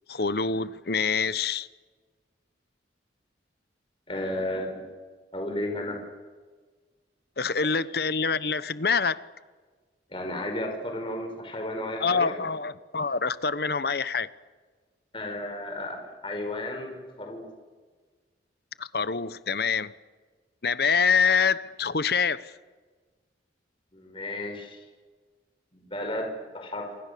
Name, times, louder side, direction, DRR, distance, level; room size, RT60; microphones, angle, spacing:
voice 1, 0.1-1.7 7.4-9.2 12.0-14.3 18.8-19.9 20.6-22.5, left 5 dB, 55° left, 1.0 m, -26 dB
voice 2, 4.1-4.8 5.3-6.0 10.1-12.4 15.1-17.5 23.9-24.8 25.7-26.9, left 1 dB, 30° left, 5.0 m, -33 dB
29.0 x 26.0 x 6.9 m
head